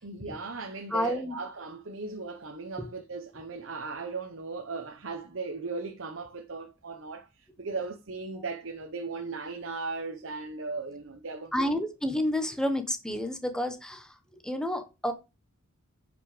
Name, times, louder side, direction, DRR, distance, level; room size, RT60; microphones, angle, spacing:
voice 1, 0.0-11.8, right 4 dB, 60° right, 1.0 m, -37 dB
voice 2, 0.9-1.3 11.5-14.1 14.4-15.1, left 1 dB, 5° left, 1.2 m, -29 dB
10.5 x 5.4 x 5.0 m
head